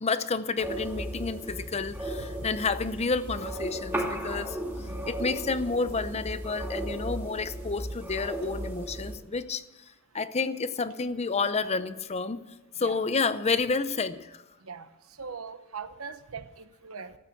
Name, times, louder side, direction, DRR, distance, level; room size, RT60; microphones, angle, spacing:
voice 1, 0.0-4.6 5.1-9.6 10.1-12.4 12.8-14.4, left 4 dB, 30° left, 13 dB, 0.6 m, -30 dB
sound 1, 0.6-9.2, right 1 dB, 10° right, 2.5 m, -35 dB
voice 2, 15.2-17.2, right 5 dB, 85° right, 11 dB, 1.0 m, -41 dB
13.5 x 8.7 x 7.9 m, 0.99 s
head